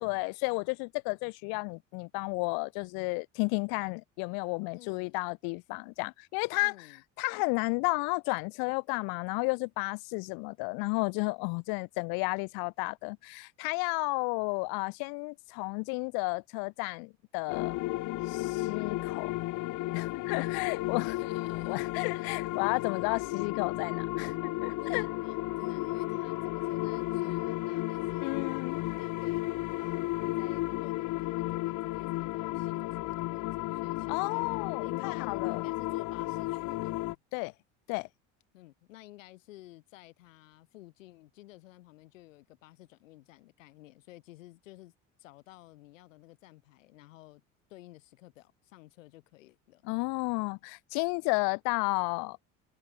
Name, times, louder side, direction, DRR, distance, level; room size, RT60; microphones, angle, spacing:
voice 1, 0.0-6.9 7.2-17.8 18.3-19.3 19.9-21.1 21.7-25.0 28.2-28.8 34.1-35.6 37.3-37.5 37.9-38.1 49.8-52.4, left 32 dB, 70° left, 1.1 m, -32 dB
voice 2, 4.7-5.2 6.6-7.0 21.0-21.9 22.2-22.3 24.8-28.3 28.7-29.4 29.8-37.2 38.5-44.9 45.2-47.4 47.7-49.8, left 17 dB, 85° left, 3.6 m, -53 dB
sound 1, 17.5-37.2, left 19 dB, 50° left, 0.7 m, -33 dB
hypercardioid pair, 75°, 38 cm